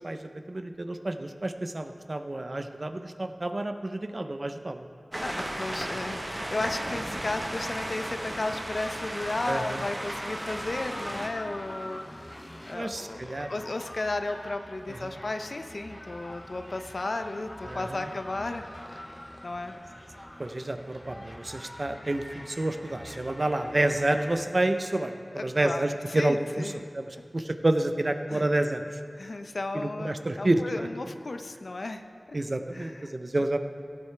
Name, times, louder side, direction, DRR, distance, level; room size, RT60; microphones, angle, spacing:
voice 1, 0.0-4.8 9.5-9.8 12.7-13.5 15.0-15.2 17.7-18.1 20.4-26.6 26.9-28.8 29.7-30.9 32.3-33.6, right 2 dB, 45° right, 8 dB, 0.6 m, -29 dB
sound 1, 5.1-11.3, right 1 dB, 30° right, 1.1 m, -35 dB
voice 2, 5.2-12.3 12.7-19.0 19.4-19.7 25.3-26.8 28.3-28.4 29.2-32.4 32.7-33.2, left 2 dB, 65° left, 8 dB, 0.5 m, -34 dB
sound 2, 7.4-24.5, left 1 dB, 15° left, 0.4 m, -45 dB
16.0 x 8.3 x 3.3 m, 2.4 s
wide cardioid pair, 55°, 0 cm